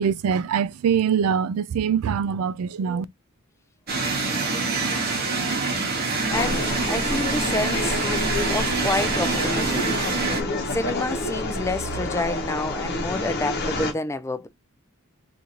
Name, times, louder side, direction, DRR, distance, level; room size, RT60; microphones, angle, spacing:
voice 1, 0.0-3.1, right 7 dB, 90° right, 0.4 m, -23 dB
sound 1, 3.9-10.4, right 3 dB, 45° right, 1.0 m, -25 dB
sound 2, 6.3-13.9, left 2 dB, 50° left, 0.9 m, -28 dB
voice 2, 6.3-8.0 8.5-9.9 10.7-14.5, left 2 dB, 15° left, 0.3 m, -28 dB
3.8 x 2.5 x 2.9 m
head